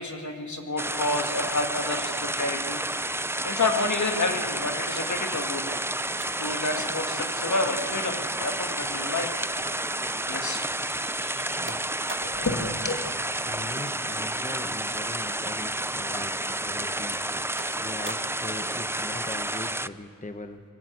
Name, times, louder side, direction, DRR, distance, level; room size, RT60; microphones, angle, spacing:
voice 1, 0.0-2.8 3.4-5.7 6.4-9.4 10.3-10.6 11.0-11.2 12.2-13.0, left 2 dB, 60° left, 4 dB, 2.1 m, -29 dB
sound 1, 0.8-19.9, right 1 dB, 10° right, 0.5 m, -30 dB
sound 2, 6.1-10.2 10.5-12.5 13.8-14.7 15.2-15.4 16.1-16.7 17.1-18.5 19.7-19.8, right 3 dB, 35° right, 1.6 m, -47 dB
voice 2, 11.6-12.9 13.4-17.2 17.8-20.6, left 2 dB, 25° left, 7 dB, 1.1 m, -40 dB
20.5 x 17.0 x 8.0 m, 2.3 s
cardioid pair, 50°, 33 cm